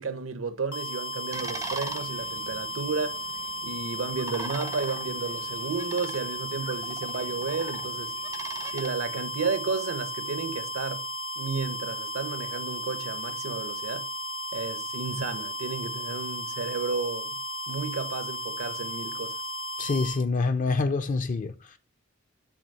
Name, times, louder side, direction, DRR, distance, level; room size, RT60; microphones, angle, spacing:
voice 1, 0.0-3.2 3.6-8.1 8.7-11.0 11.4-14.1 14.5-17.4 17.7-19.3, right 4 dB, 80° right, 0.8 m, -32 dB
sound 1, 0.7-20.2, equal, 80° left, 1.0 m, -35 dB
sound 2, 1.3-8.9, right 4 dB, 15° right, 0.4 m, -42 dB
voice 2, 19.8-21.5, left 3 dB, 40° left, 0.4 m, -26 dB
7.1 x 3.1 x 5.3 m
head